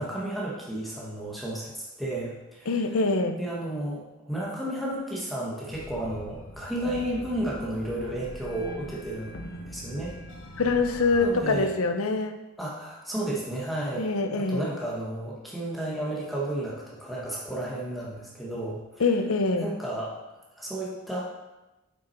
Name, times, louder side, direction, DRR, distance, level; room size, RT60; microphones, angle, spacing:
voice 1, 0.0-2.8 3.4-10.1 11.2-11.7 12.6-19.0 19.6-20.1 20.5-21.2, right 1 dB, ahead, -6 dB, 1.3 m, -33 dB
voice 2, 2.7-3.4 10.6-12.4 14.0-14.7 19.0-19.7, left 3 dB, 75° left, 8 dB, 0.7 m, -24 dB
sound 1, 5.7-11.7, equal, 55° left, 1.1 m, -42 dB
7.1 x 6.2 x 4.4 m, 1.0 s
head